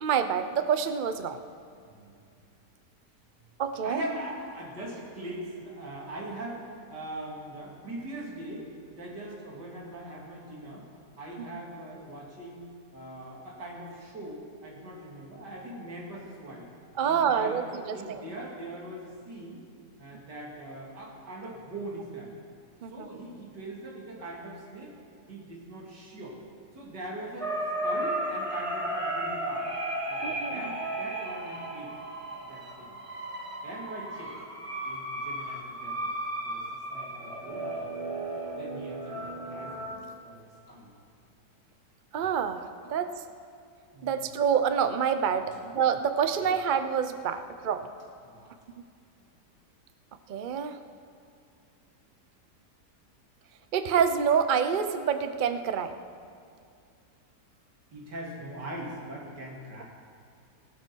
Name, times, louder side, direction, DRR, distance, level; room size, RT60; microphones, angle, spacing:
voice 1, 0.0-1.4 3.6-4.0 16.9-18.2 22.8-23.1 30.2-30.8 42.1-43.1 44.0-47.9 50.3-50.8 53.7-55.9, right 7 dB, 60° right, 9 dB, 0.5 m, -27 dB
voice 2, 1.9-2.2 3.8-8.7 8.9-10.8 11.2-12.6 12.9-16.7 17.0-19.6 20.0-22.3 22.9-24.9 25.3-26.4 26.8-29.7 30.1-31.9 32.5-32.9 33.6-34.3 34.8-36.1 36.5-36.6 36.9-37.9 38.5-40.9 43.9-44.1 45.4-45.5 48.2-48.5 57.9-59.8, right 1 dB, 80° right, -3 dB, 3.3 m, -41 dB
sound 1, 27.4-39.9, right 1 dB, 20° right, 1.5 m, -34 dB
18.5 x 12.0 x 4.6 m, 2.4 s
omnidirectional pair, 1.8 m